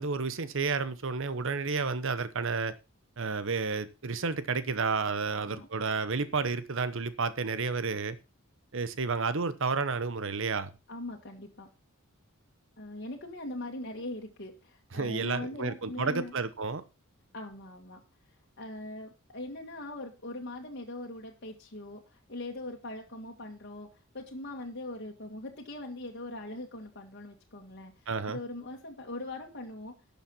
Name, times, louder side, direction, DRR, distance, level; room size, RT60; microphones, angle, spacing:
voice 1, 0.0-2.7 3.2-8.2 8.7-10.7 14.9-16.8 28.1-28.4, right 4 dB, 65° right, 0.9 m, -31 dB
voice 2, 5.3-5.7 10.9-11.7 12.8-16.3 17.3-18.0 18.6-30.0, left 2 dB, 50° left, 2.0 m, -41 dB
12.0 x 7.3 x 5.6 m
head